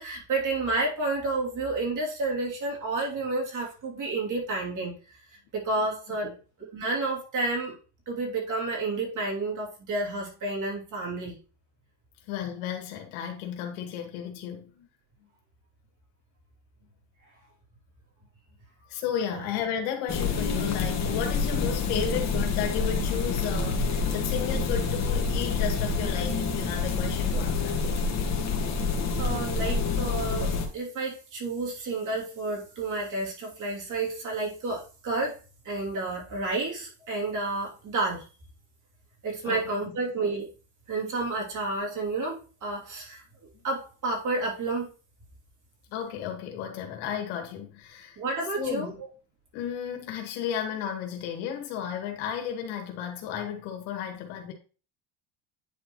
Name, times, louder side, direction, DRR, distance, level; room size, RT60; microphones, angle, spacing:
voice 1, 0.0-5.2 5.5-6.3 6.7-7.8 8.1-11.4 19.3-19.4 28.7-28.8 29.2-35.4 35.6-38.2 39.2-40.5 40.9-43.2 43.6-44.9 48.2-48.9, right 2 dB, 40° right, 3.2 m, -30 dB
voice 2, 12.3-14.9 18.9-28.0 39.4-39.9 45.9-48.2 48.6-49.0 49.5-54.5, left 8 dB, 80° left, 2.3 m, -33 dB
sound 1, 20.1-30.7, left 4 dB, 35° left, 1.9 m, -27 dB
10.0 x 4.5 x 3.1 m
cardioid pair, 120°, 45 cm